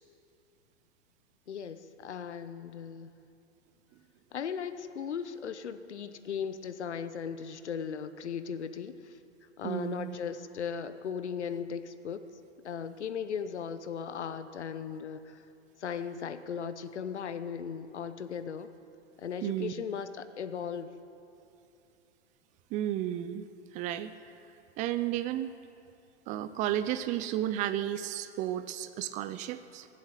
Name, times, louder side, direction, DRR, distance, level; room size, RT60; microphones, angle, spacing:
voice 1, 1.5-3.1 4.3-9.2 9.6-12.3 12.6-15.4 15.8-18.7 19.2-20.9, left 7 dB, 75° left, 11 dB, 0.9 m, -37 dB
voice 2, 9.6-10.2 19.4-19.7 22.7-23.5 23.7-24.1 24.8-25.5 26.3-29.9, right 12 dB, 25° right, 12 dB, 0.4 m, -33 dB
19.5 x 7.5 x 8.2 m, 2.7 s
hypercardioid pair, 105°, 34 cm